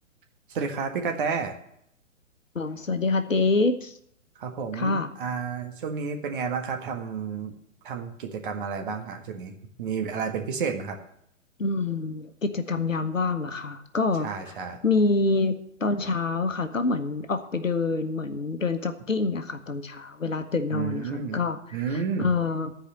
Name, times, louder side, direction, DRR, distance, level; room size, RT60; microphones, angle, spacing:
voice 1, 0.5-1.5 4.3-7.5 7.8-11.0 14.2-14.8 20.7-21.4 21.7-22.3, right 5 dB, 40° right, 3 dB, 1.6 m, -31 dB
voice 2, 2.5-3.9 4.7-5.1 11.6-14.5 14.8-15.5 15.8-22.7, left 3 dB, 75° left, 9 dB, 1.2 m, -26 dB
13.5 x 4.9 x 7.6 m, 0.72 s
figure-of-eight pair, 120°, 39 cm